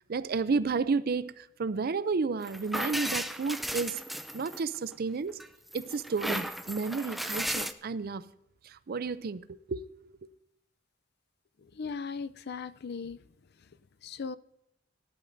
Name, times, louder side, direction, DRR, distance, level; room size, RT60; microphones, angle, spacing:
voice 1, 0.1-4.0 4.3-5.4 5.7-8.3 8.6-9.8, right 4 dB, 50° right, 0.5 m, -31 dB
sound 1, 2.4-4.9 5.4-7.7, equal, ahead, 0.5 m, -35 dB
voice 2, 11.8-13.2 14.0-14.4, left 5 dB, 55° left, 0.5 m, -37 dB
18.5 x 11.5 x 2.7 m
head